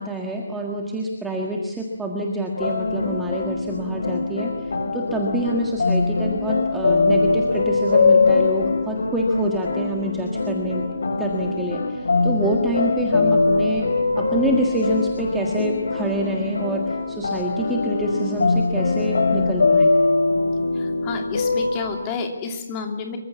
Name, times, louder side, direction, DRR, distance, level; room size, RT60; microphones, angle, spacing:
voice 1, 0.0-10.8 11.2-13.9 14.2-19.9, right 1 dB, 5° right, 0 dB, 1.7 m, -27 dB
sound 1, 2.6-22.0, left 3 dB, 75° left, 7.9 m, -22 dB
voice 2, 20.7-23.2, left 5 dB, 15° left, 4 dB, 2.9 m, -30 dB
26.5 x 24.0 x 7.2 m, 0.98 s
hypercardioid pair, 180°, 0 cm